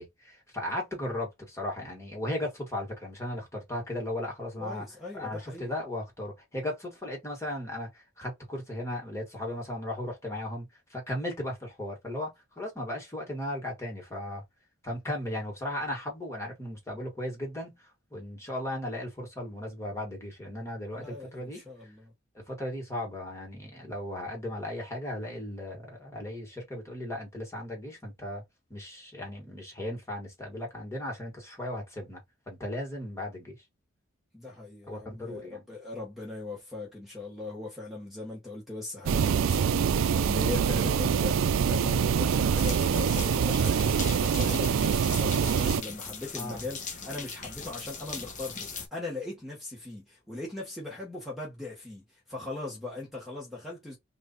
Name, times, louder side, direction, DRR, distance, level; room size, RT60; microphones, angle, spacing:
voice 1, 0.0-4.9 5.1-14.4 14.8-21.6 22.3-28.4 28.7-32.2 32.5-33.6 34.9-35.6 46.3-46.6, left 1 dB, 15° left, 1.4 m, -36 dB
voice 2, 4.6-5.7 20.9-22.1 34.3-54.0, left 2 dB, ahead, 1.2 m, -39 dB
sound 1, 39.1-45.8, right 7 dB, 80° right, 0.4 m, -25 dB
sound 2, 42.6-48.9, left 5 dB, 40° left, 0.9 m, -40 dB
3.2 x 2.5 x 3.9 m
head